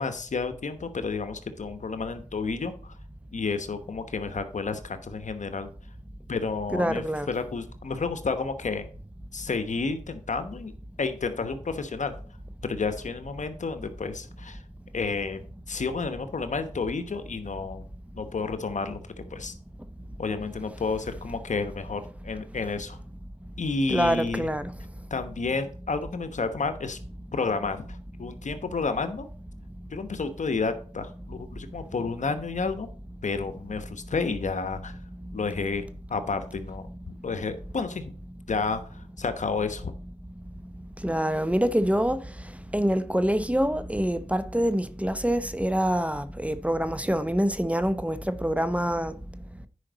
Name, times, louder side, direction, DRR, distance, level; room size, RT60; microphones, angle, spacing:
voice 1, 0.0-2.9 3.3-5.7 6.3-8.9 9.3-10.7 11.0-12.2 12.6-14.6 14.9-15.4 15.7-17.8 18.1-19.0 19.3-19.5 20.2-23.0 23.6-24.5 25.1-27.0 27.3-29.3 29.9-32.9 33.2-35.0 35.3-35.8 36.1-38.0 38.5-39.9, left 4 dB, 70° left, 1.1 m, -31 dB
voice 2, 6.7-7.3 23.9-24.7 41.0-42.2 42.7-49.1, equal, 10° right, 0.8 m, -25 dB
9.9 x 5.1 x 4.0 m
cardioid pair, 40°, 13 cm